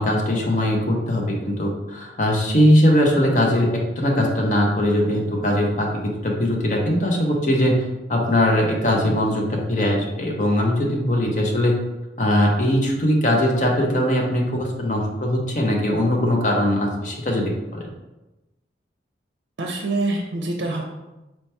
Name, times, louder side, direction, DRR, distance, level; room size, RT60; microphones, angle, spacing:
voice 1, 0.0-11.8 12.2-17.9, left 1 dB, 40° left, 0 dB, 0.8 m, -20 dB
voice 2, 19.6-20.8, right 2 dB, 65° right, 0 dB, 0.5 m, -25 dB
4.4 x 2.9 x 3.3 m, 1.0 s
head